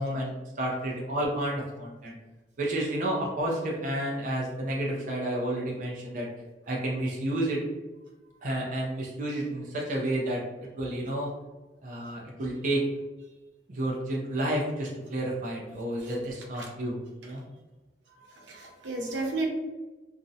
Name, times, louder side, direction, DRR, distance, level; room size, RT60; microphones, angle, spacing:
voice 1, 0.0-2.1 2.6-6.3 6.7-7.6 8.4-10.4 10.8-11.3 11.8-12.8 13.7-17.4, right 1 dB, 45° right, -2 dB, 0.4 m, -30 dB
voice 2, 18.3-19.5, right 2 dB, 85° right, 0 dB, 0.6 m, -33 dB
2.4 x 2.0 x 2.6 m, 1.2 s
head